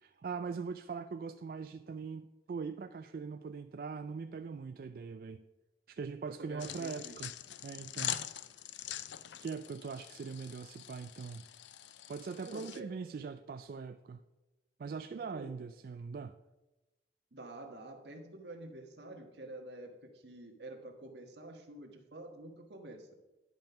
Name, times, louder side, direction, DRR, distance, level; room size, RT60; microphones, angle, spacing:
voice 1, 0.0-5.4 5.9-7.3 7.6-8.2 9.4-11.4 12.1-14.2 14.8-16.3, right 5 dB, 55° right, 0.3 m, -41 dB
voice 2, 6.4-7.3 12.4-12.9 15.3-15.5 17.3-23.1, right 2 dB, 75° right, 1.4 m, -48 dB
sound 1, 6.6-12.8, left 11 dB, 85° left, 0.4 m, -43 dB
10.5 x 5.3 x 5.7 m
head